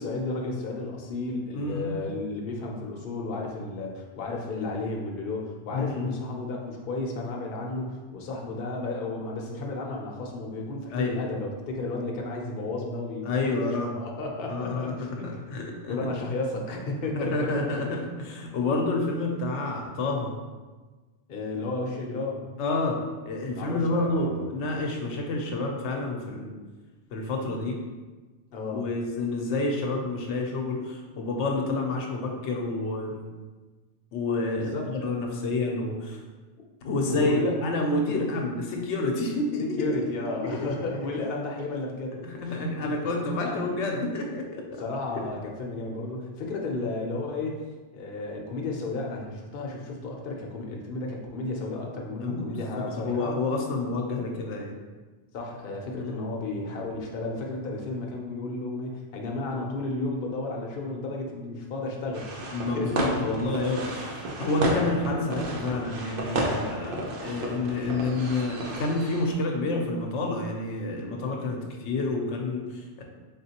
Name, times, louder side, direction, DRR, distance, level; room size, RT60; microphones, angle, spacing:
voice 1, 0.0-15.4 15.8-17.7 21.3-22.4 23.5-24.5 28.5-28.9 34.5-34.8 37.1-37.5 38.1-38.3 39.6-42.2 42.8-43.0 43.4-43.6 44.8-47.6 47.9-53.3 55.3-63.4, left 2 dB, 55° left, -1 dB, 0.8 m, -33 dB
voice 2, 1.5-2.0 5.7-6.1 10.9-11.3 13.2-13.9 14.5-16.1 17.1-20.4 22.6-26.5 27.1-27.8 28.7-33.2 34.1-36.2 36.8-39.9 40.2-40.7 41.1-41.2 42.1-44.8 52.2-54.8 56.0-56.3 62.5-73.0, left 2 dB, 85° left, 1 dB, 0.9 m, -29 dB
sound 1, 62.1-69.3, right 1 dB, 60° right, 0.7 m, -32 dB
4.0 x 3.7 x 2.8 m, 1.3 s
omnidirectional pair, 1.2 m